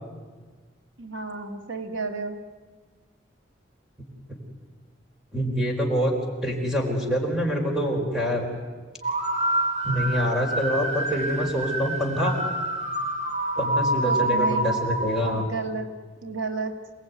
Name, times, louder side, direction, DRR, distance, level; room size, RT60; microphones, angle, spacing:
voice 1, 1.0-2.4 14.0-14.8 15.2-15.9 16.2-16.8, right 4 dB, 90° right, 5 dB, 2.2 m, -32 dB
voice 2, 5.3-6.1 6.4-8.5 9.8-12.4 13.6-15.5, equal, 5° right, 1 dB, 4.3 m, -25 dB
sound 1, 9.0-15.5, right 1 dB, 35° right, 2.6 m, -27 dB
27.5 x 19.0 x 9.5 m, 1.5 s
head